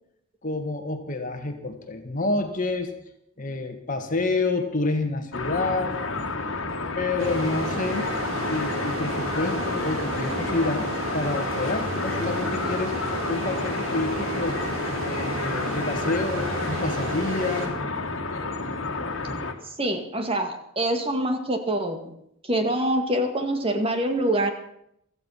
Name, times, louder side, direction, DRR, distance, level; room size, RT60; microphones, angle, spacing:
voice 1, 0.4-2.9 3.4-6.0 7.0-8.1 8.4-13.0 13.3-14.6 15.0-17.8, left 2 dB, 40° left, 5 dB, 2.1 m, -28 dB
sound 1, 5.3-19.5, left 3 dB, 75° left, 2.0 m, -30 dB
sound 2, 7.2-17.7, right 1 dB, 85° right, 4.0 m, -32 dB
voice 2, 19.8-22.1 22.4-24.5, right 1 dB, 30° right, 6 dB, 2.1 m, -25 dB
16.5 x 14.5 x 5.9 m, 0.72 s
head